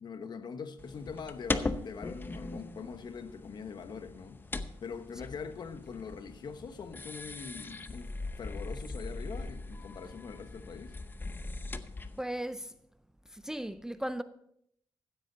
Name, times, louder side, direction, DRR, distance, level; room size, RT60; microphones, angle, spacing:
voice 1, 0.0-4.4 4.8-11.0, left 5 dB, 55° left, 1.1 m, -43 dB
sound 1, 0.8-12.2, left 2 dB, 25° left, 0.7 m, -40 dB
voice 2, 12.2-12.7 13.3-14.2, right 1 dB, 5° right, 0.5 m, -36 dB
15.0 x 8.1 x 4.0 m
cardioid pair, 85°, 9 cm